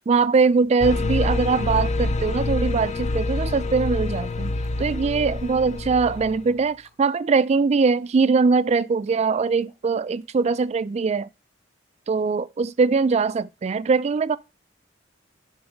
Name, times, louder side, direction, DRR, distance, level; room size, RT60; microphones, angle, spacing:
voice 1, 0.0-4.5 4.8-11.3 12.1-14.4, right 4 dB, 35° right, 0.3 m, -21 dB
sound 1, 0.8-6.5, left 2 dB, 35° left, 0.5 m, -26 dB
sound 2, 2.3-2.4 2.8-2.9 3.8-4.9 6.1-7.1 8.3-8.7 9.1-9.3 9.6-9.9 10.2-10.3, left 2 dB, 80° left, 3.9 m, -55 dB
7.1 x 3.9 x 6.3 m
head